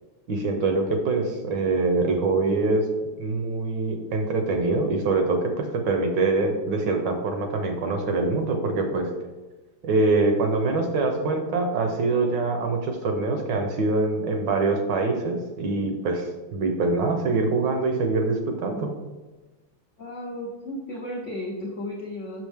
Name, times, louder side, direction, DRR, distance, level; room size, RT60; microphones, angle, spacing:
voice 1, 0.3-9.1 9.8-18.9, right 3 dB, 65° right, 4 dB, 1.3 m, -24 dB
voice 2, 20.0-22.5, left 1 dB, 65° left, -2 dB, 0.7 m, -34 dB
6.3 x 6.0 x 3.4 m, 1.2 s
omnidirectional pair, 2.3 m